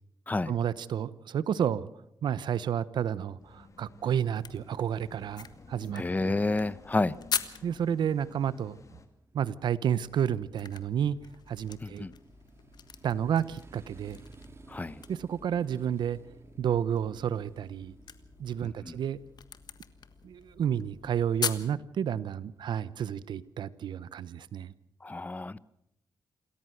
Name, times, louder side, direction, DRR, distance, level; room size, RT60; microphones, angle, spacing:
voice 1, 0.5-1.9 2.2-6.3 7.6-8.8 9.3-11.2 11.5-12.0 13.0-14.2 15.1-16.2 16.6-17.9 18.4-19.2 20.2-24.7, right 9 dB, 85° right, 0.9 m, -31 dB
sound 1, 3.4-9.1, left 4 dB, 45° left, 2.7 m, -54 dB
sound 2, 4.3-7.9 10.0-21.7, left 7 dB, 65° left, 1.5 m, -42 dB
voice 2, 5.9-7.2 11.8-12.1 14.7-15.0 18.6-19.0 25.0-25.6, left 2 dB, 20° left, 0.8 m, -30 dB
Motorcycle, 7.7-23.5, right 3 dB, 35° right, 2.5 m, -57 dB
28.0 x 14.0 x 7.9 m
cardioid pair, 90°, 8 cm